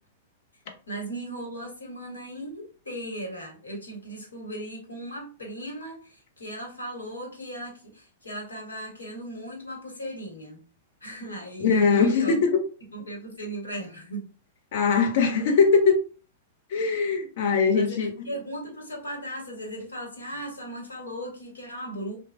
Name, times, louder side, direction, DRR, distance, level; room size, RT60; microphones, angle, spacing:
voice 1, 0.9-10.6 11.0-12.4 12.9-14.3 17.7-22.2, right 1 dB, 85° left, 1.2 m, -37 dB
voice 2, 11.6-12.6 14.7-16.0 16.7-18.3, left 5 dB, 60° left, 0.8 m, -21 dB
3.1 x 2.3 x 2.6 m
hypercardioid pair, 105°, 0 cm